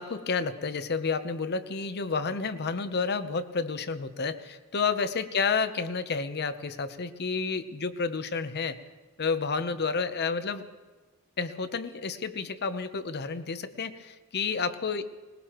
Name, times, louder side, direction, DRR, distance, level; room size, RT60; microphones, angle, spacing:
voice 1, 0.0-8.8 9.2-10.6 11.4-15.0, left 5 dB, 50° left, 11 dB, 0.8 m, -30 dB
20.5 x 20.0 x 3.0 m, 1.3 s
head